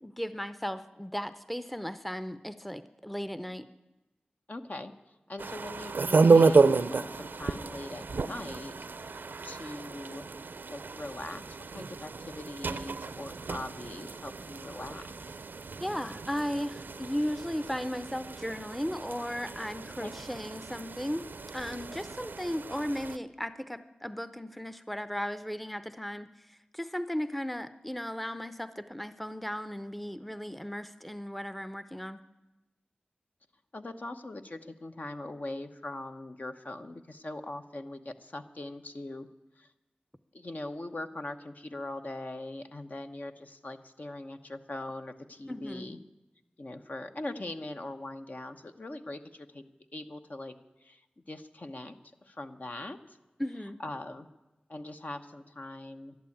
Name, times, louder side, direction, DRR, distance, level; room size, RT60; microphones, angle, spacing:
voice 1, 0.0-3.7 15.8-21.3 21.5-32.2 45.5-45.9 53.4-53.8, equal, 5° left, 12 dB, 0.7 m, -36 dB
voice 2, 4.5-4.9 5.3-8.7 9.1-10.3 10.7-15.4 20.0-20.1 33.7-39.3 39.6-39.7 40.3-46.0 46.6-49.6 49.9-50.5 50.8-51.0 51.3-52.0 52.2-53.2 53.8-54.3 54.7-56.2, left 2 dB, 55° left, 6 dB, 1.0 m, -41 dB
sound 1, 5.4-23.2, right 4 dB, 80° right, 0.6 m, -30 dB
12.0 x 11.5 x 8.6 m, 1.0 s
cardioid pair, 45°, 3 cm